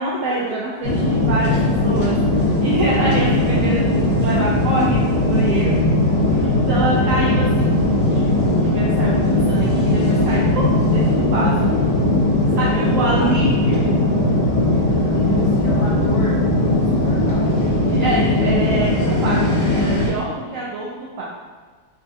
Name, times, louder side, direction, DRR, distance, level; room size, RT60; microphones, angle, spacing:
voice 1, 0.0-1.6 1.8-2.1 2.6-5.7 6.4-7.7 8.1-8.2 8.6-11.5 12.5-13.9 17.8-21.2, right 2 dB, 70° right, -5 dB, 0.7 m, -25 dB
sound 1, 0.8-20.1, left 1 dB, 60° left, 0.4 m, -18 dB
voice 2, 12.4-12.8 13.2-13.3 14.8-17.6, left 2 dB, 90° left, -5 dB, 1.7 m, -32 dB
5.0 x 2.3 x 2.7 m, 1.5 s
omnidirectional pair, 1.9 m